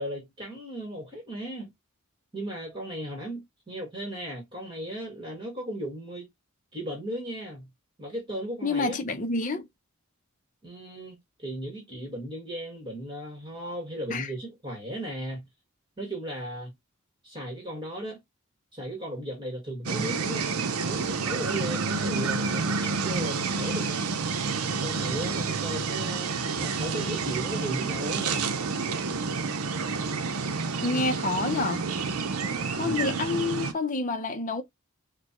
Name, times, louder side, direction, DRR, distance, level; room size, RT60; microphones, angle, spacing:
voice 1, 0.0-1.7 2.3-6.3 6.7-7.7 8.0-9.0 10.6-15.5 16.0-16.7 17.2-18.2 18.7-20.5 20.8-24.1 24.7-28.5 32.8-33.0, right 1 dB, 20° right, 1.7 m, -36 dB
voice 2, 8.6-9.7 14.1-14.3 30.8-31.9 32.8-34.6, left 3 dB, 35° left, 0.6 m, -28 dB
sound 1, 19.9-33.7, right 4 dB, 80° right, 0.7 m, -29 dB
6.6 x 2.3 x 2.9 m
head